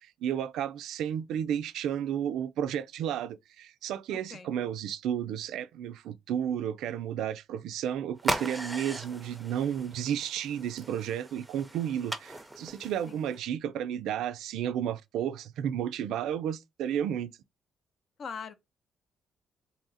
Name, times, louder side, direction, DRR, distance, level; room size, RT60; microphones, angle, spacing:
voice 1, 0.2-17.3, right 9 dB, 85° right, 0.3 m, -32 dB
voice 2, 4.1-4.5 13.0-13.2 18.2-18.5, left 6 dB, 55° left, 0.6 m, -41 dB
sound 1, 8.2-13.4, right 1 dB, 10° right, 0.5 m, -38 dB
2.8 x 2.5 x 3.9 m
cardioid pair, 90°, 0 cm